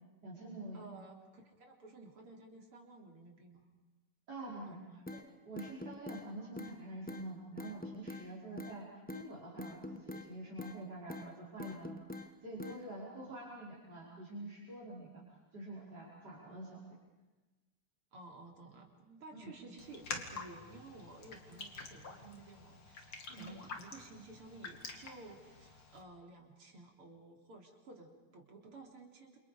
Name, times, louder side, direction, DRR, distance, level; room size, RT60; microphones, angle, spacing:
voice 1, 0.2-0.8 4.3-4.8 5.1-8.9 9.1-15.2 15.5-16.8 19.4-19.5 23.3-23.5, right 2 dB, 45° right, -5 dB, 6.0 m, -47 dB
voice 2, 0.7-3.6 4.7-5.0 18.1-29.4, right 2 dB, 85° right, 1 dB, 4.5 m, -54 dB
sound 1, 5.1-5.2 5.6-6.2 6.6-6.7 7.1-7.2 7.6-8.2 8.6-8.8 9.1-9.2 9.6-10.3 10.6-10.8 11.1-11.3 11.6-12.3 12.6-12.8, left 2 dB, 5° left, 0.8 m, -44 dB
Raindrop, 19.8-26.0, left 4 dB, 70° left, 3.3 m, -48 dB
28.5 x 28.0 x 5.2 m, 1.2 s
omnidirectional pair, 2.4 m